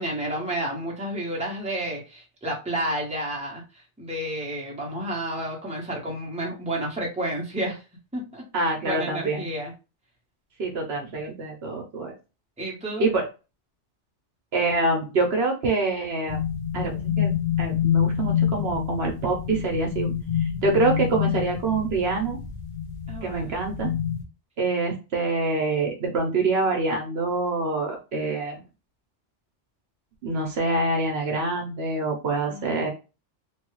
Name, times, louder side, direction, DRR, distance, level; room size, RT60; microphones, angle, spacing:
voice 1, 0.0-3.6 4.0-7.8 8.1-9.7 12.6-13.1 23.1-23.5 32.5-32.9, right 1 dB, 5° right, -2 dB, 0.9 m, -31 dB
voice 2, 8.5-9.5 10.6-12.1 13.0-13.3 14.5-16.4 16.7-20.1 20.4-22.4 23.2-23.9 24.6-28.6 30.2-32.9, right 3 dB, 60° right, 1 dB, 0.9 m, -26 dB
sound 1, 16.3-24.2, left 9 dB, 50° left, 0.7 m, -27 dB
3.1 x 2.3 x 3.0 m, 0.30 s
omnidirectional pair, 1.2 m